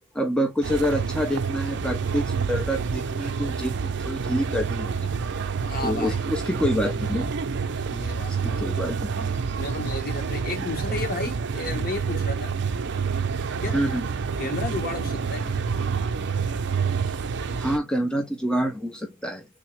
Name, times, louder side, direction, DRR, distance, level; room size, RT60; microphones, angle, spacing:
voice 1, 0.1-5.1 5.8-7.3 8.4-9.4 13.7-14.0 17.0-19.5, equal, 5° left, 0.4 m, -27 dB
sound 1, 0.6-17.8, right 5 dB, 50° right, 0.5 m, -28 dB
voice 2, 5.6-6.2 7.8-8.7 9.6-12.5 13.6-13.8 14.4-15.5, left 3 dB, 40° left, 1.0 m, -33 dB
3.5 x 2.8 x 3.1 m
head